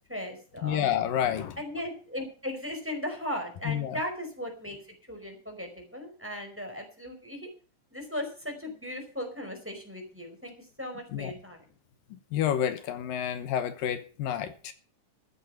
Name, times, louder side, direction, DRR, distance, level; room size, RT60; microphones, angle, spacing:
voice 1, 0.1-0.9 1.6-4.8 5.1-7.5 7.9-11.6, left 1 dB, 5° right, 4.6 m, -37 dB
voice 2, 0.6-1.6 3.7-4.0 11.1-11.3 12.3-14.7, left 10 dB, 80° left, 2.8 m, -29 dB
14.5 x 9.2 x 5.8 m
omnidirectional pair, 4.0 m